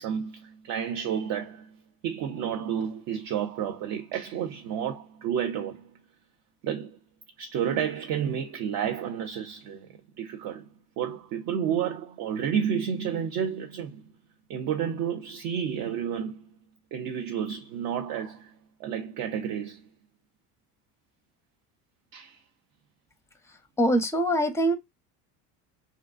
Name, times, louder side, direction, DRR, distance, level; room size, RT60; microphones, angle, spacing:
voice 1, 0.0-1.8 2.0-5.9 6.6-7.0 7.4-10.7 11.0-14.0 14.5-16.5 16.9-18.5 18.8-19.9 22.1-22.4, right 8 dB, 45° right, 0.5 m, -31 dB
voice 2, 23.5-24.7, right 1 dB, 5° left, 0.6 m, -24 dB
2.5 x 2.2 x 2.3 m
hypercardioid pair, 65°, 46 cm